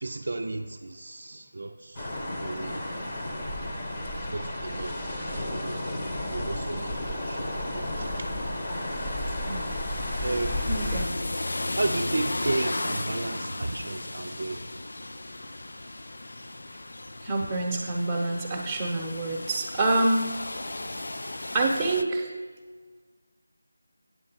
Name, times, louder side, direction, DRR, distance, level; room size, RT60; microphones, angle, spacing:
voice 1, 0.0-2.1 2.4-2.8 4.3-5.1 5.4-6.0 6.3-8.3 8.8-9.0 10.2-11.1 11.8-14.8, right 2 dB, 55° right, 1 dB, 0.5 m, -33 dB
sound 1, 2.0-11.1, left 1 dB, 25° left, 1.0 m, -32 dB
voice 2, 5.0-5.3 9.5-9.6 10.7-11.1 17.2-20.3 21.5-22.3, right 2 dB, 10° right, -1 dB, 1.0 m, -27 dB
sound 2, 6.8-22.0, left 2 dB, 65° left, 0.5 m, -36 dB
9.1 x 7.3 x 4.4 m, 1.5 s
figure-of-eight pair, 170°, 0 cm